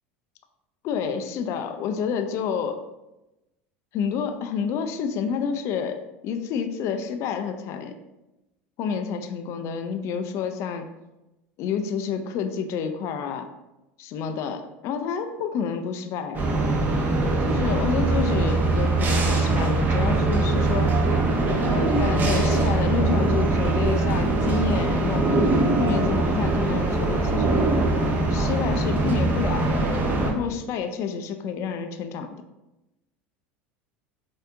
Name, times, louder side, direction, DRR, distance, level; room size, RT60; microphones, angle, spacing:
voice 1, 0.8-2.8 3.9-6.0 6.2-7.9 8.8-10.9 11.6-13.5 14.0-16.4 17.4-21.1 21.6-25.3 25.8-27.6 28.3-29.9 30.2-32.4, left 6 dB, 55° left, 7 dB, 0.4 m, -29 dB
sound 1, 16.3-30.3, right 2 dB, 30° right, 0.7 m, -22 dB
4.3 x 2.6 x 2.6 m, 0.98 s
supercardioid pair, 105°, 6 cm